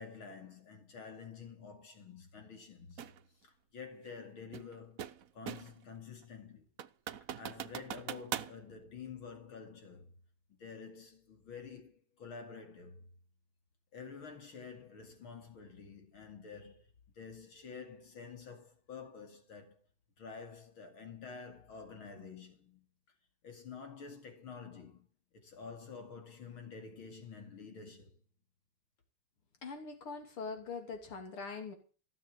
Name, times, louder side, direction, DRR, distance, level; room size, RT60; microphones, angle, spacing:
voice 1, 0.0-3.1 3.4-6.6 7.3-10.1 10.5-13.1 13.9-16.9 17.1-19.8 20.2-22.8 23.4-25.1 25.3-28.2, left 5 dB, 70° left, 3.3 m, -49 dB
sound 1, 3.0-3.2 4.5-5.8 6.2-6.3 6.8-8.6, right 9 dB, 60° right, 0.9 m, -41 dB
voice 2, 29.6-31.8, left 4 dB, 90° left, 3.6 m, -42 dB
16.0 x 7.3 x 8.3 m
omnidirectional pair, 2.3 m